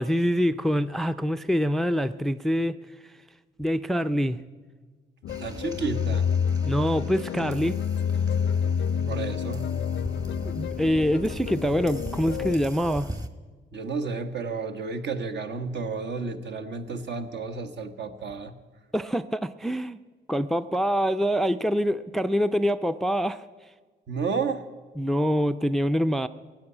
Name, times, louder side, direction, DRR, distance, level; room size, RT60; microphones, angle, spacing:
voice 1, 0.0-2.8 3.6-4.4 6.7-7.8 10.5-13.1 18.9-20.0 20.3-23.5 25.0-26.3, equal, ahead, 13 dB, 0.4 m, -25 dB
sound 1, 5.2-12.6, left 7 dB, 65° left, 0.5 m, -28 dB
sound 2, 5.3-13.3, right 1 dB, 20° right, 1.1 m, -41 dB
voice 2, 5.4-6.3 9.1-9.7 13.7-18.5 24.1-24.7, right 4 dB, 60° right, 8 dB, 1.2 m, -31 dB
16.0 x 8.8 x 9.7 m, 1.4 s
cardioid pair, 90°, 20 cm